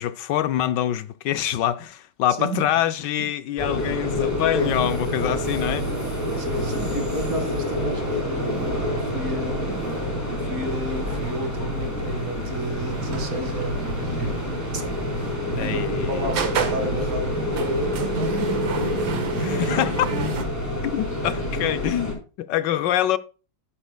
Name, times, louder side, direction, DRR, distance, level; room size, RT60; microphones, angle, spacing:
voice 1, 0.0-5.9 15.6-16.3 19.4-20.1 20.9-23.2, left 12 dB, 75° left, 1.2 m, -25 dB
sound 1, 3.6-22.1, left 1 dB, 10° left, 3.8 m, -28 dB
voice 2, 4.5-4.9 6.3-14.4 14.7-14.8 15.5-18.7 19.3-19.8, right 1 dB, 50° right, 2.2 m, -31 dB
sound 2, 12.9-20.4, right 4 dB, 85° right, 2.1 m, -31 dB
11.5 x 9.9 x 2.2 m
omnidirectional pair, 2.0 m